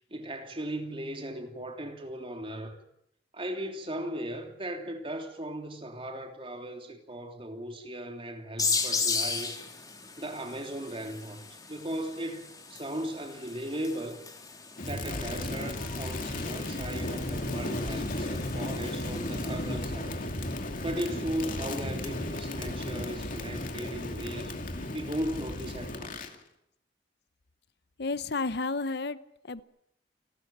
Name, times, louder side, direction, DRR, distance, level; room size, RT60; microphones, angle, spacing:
voice 1, 0.1-2.8 3.3-9.6 10.2-14.2 14.9-20.2 20.8-24.6 24.9-26.2, right 1 dB, 30° right, 3.1 m, -37 dB
sound 1, 8.6-19.9, left 4 dB, 20° left, 3.4 m, -37 dB
Crackle, 14.8-26.3, left 1 dB, 50° left, 2.7 m, -34 dB
voice 2, 28.0-29.6, left 3 dB, 65° left, 0.9 m, -32 dB
29.0 x 13.0 x 8.9 m
head